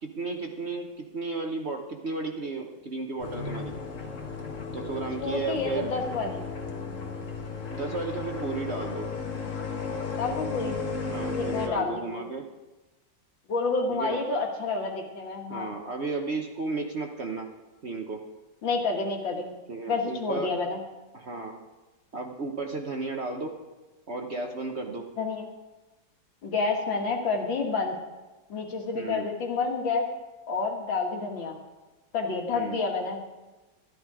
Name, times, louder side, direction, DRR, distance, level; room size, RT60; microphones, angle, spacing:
voice 1, 0.0-3.7 4.7-5.9 7.7-9.1 11.1-12.4 13.9-14.2 15.5-17.5 17.8-18.2 19.7-20.5 21.1-21.6 22.1-23.5 24.1-25.0 28.9-29.3 32.5-32.8, right 3 dB, 45° right, 3 dB, 1.0 m, -34 dB
sound 1, 3.2-11.7, left 4 dB, 45° left, 1.6 m, -34 dB
voice 2, 5.2-6.4 10.2-10.8 11.4-12.3 13.5-15.7 18.6-19.5 19.9-20.8 25.2-25.4 26.4-28.0 28.5-30.0 30.5-31.6 32.1-33.2, left 4 dB, 80° left, 2 dB, 2.4 m, -29 dB
13.0 x 12.0 x 4.9 m, 1.1 s
omnidirectional pair, 2.1 m